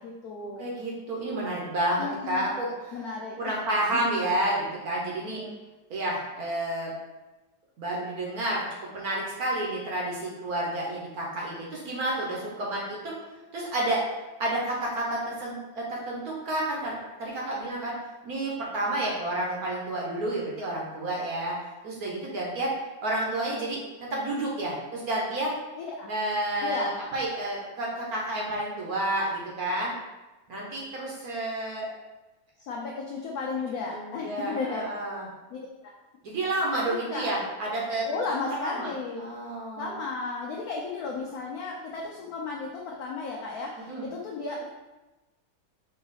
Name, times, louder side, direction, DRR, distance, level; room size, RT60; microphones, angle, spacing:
voice 1, 0.0-0.7 2.0-2.5 2.9-3.5 5.3-5.6 25.8-26.1 26.6-26.9 32.6-34.9 35.5-35.6 36.9-37.3 38.0-39.3 39.8-44.7, left 4 dB, 85° left, -1 dB, 0.8 m, -34 dB
voice 2, 0.6-3.0 3.4-5.4 5.9-6.9 7.8-13.1 13.5-14.0 14.4-17.9 18.2-21.5 21.8-22.7 23.0-25.5 26.1-29.9 30.5-31.9 33.9-35.3 36.2-38.0 38.5-38.9 39.2-39.9 43.9-44.1, right 1 dB, 60° right, -4 dB, 1.2 m, -30 dB
4.7 x 2.8 x 4.0 m, 1.1 s
omnidirectional pair, 2.2 m